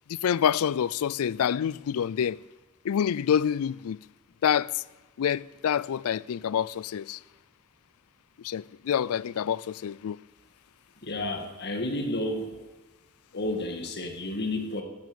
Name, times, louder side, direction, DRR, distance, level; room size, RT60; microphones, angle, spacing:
voice 1, 0.1-2.4 2.8-4.0 4.4-4.8 5.2-7.2 8.4-10.2, left 8 dB, 75° left, 0.4 m, -27 dB
voice 2, 11.0-12.7 13.3-14.8, left 1 dB, 50° left, 1.9 m, -31 dB
15.5 x 9.5 x 6.9 m
head